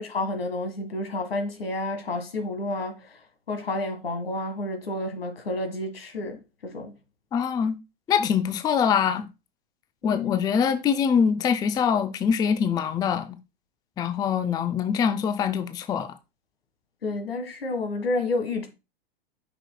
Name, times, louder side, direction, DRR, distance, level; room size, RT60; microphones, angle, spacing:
voice 1, 0.0-3.2 3.5-6.9 10.0-10.4 17.0-18.7, left 2 dB, 80° left, 1.6 m, -30 dB
voice 2, 7.3-7.7 8.1-9.3 10.0-13.4 14.0-16.2, left 7 dB, 15° left, 0.4 m, -24 dB
8.8 x 6.1 x 2.2 m
figure-of-eight pair, 95°, 30 cm